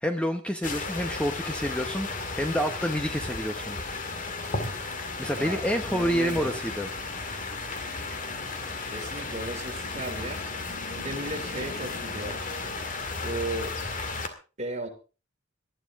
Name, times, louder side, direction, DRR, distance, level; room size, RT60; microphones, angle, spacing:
voice 1, 0.0-3.8 5.2-6.9, equal, 5° left, 6 dB, 1.0 m, -28 dB
sound 1, 0.6-14.3, left 3 dB, 45° left, 2.1 m, -34 dB
voice 2, 5.4-6.5 8.9-10.5 10.9-12.4 13.2-13.8 14.6-14.9, right 2 dB, 35° right, 3 dB, 3.1 m, -35 dB
19.0 x 12.5 x 3.6 m, 0.35 s
head